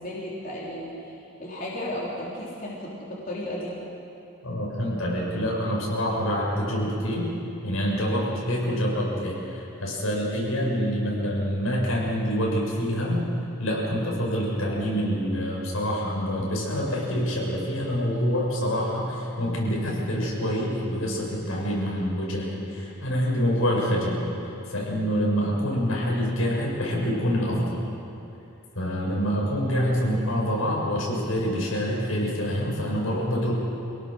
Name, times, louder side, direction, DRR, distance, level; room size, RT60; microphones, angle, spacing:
voice 1, 0.0-3.7, left 1 dB, 45° left, -6 dB, 3.9 m, -34 dB
voice 2, 4.4-7.3 7.6-13.2 13.6-24.2 24.7-27.8 28.7-33.5, equal, 90° left, -3 dB, 6.6 m, -26 dB
27.0 x 18.5 x 6.5 m, 2.8 s
head